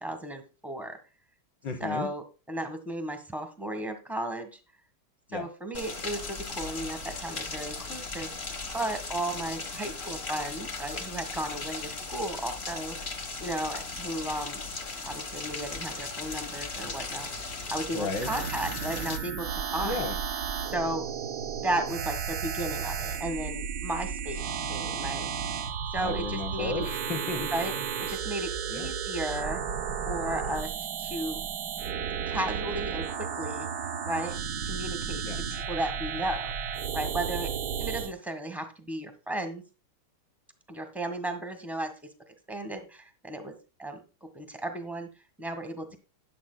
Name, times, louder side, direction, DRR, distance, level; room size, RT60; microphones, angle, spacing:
voice 1, 0.0-1.0 1.8-2.2 2.5-4.6 5.3-8.3 8.7-13.0 13.4-14.6 15.0-17.3 17.7-19.5 19.7-20.1 20.7-21.0 21.6-25.3 25.9-26.9 27.5-27.7 28.0-29.6 30.1-30.7 31.0-31.4 32.3-33.7 34.0-34.3 34.6-35.2 35.7-37.5 37.8-39.6 40.7-41.9 42.5-43.5 43.8-44.0 44.3-45.1 45.4-45.9, right 1 dB, ahead, 1.0 m, -34 dB
voice 2, 1.6-2.1 5.3-5.5 17.9-18.3 19.8-20.2 26.0-27.8 28.7-28.9 35.2-35.6, left 3 dB, 60° left, 1.9 m, -34 dB
Rain, 5.7-19.2, left 3 dB, 35° left, 1.3 m, -37 dB
sound 1, 18.1-38.1, right 7 dB, 60° right, 1.2 m, -33 dB
12.5 x 10.0 x 2.2 m
omnidirectional pair, 2.3 m